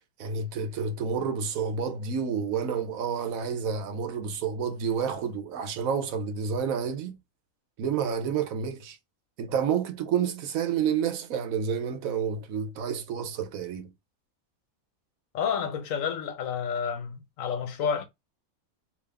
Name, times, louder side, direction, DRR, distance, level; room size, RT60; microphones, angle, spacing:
voice 1, 0.2-7.2 7.8-9.0 9.4-13.9, right 7 dB, 75° right, 1.1 m, -29 dB
voice 2, 15.3-18.0, left 7 dB, 70° left, 1.1 m, -30 dB
3.5 x 2.8 x 3.3 m
omnidirectional pair, 1.5 m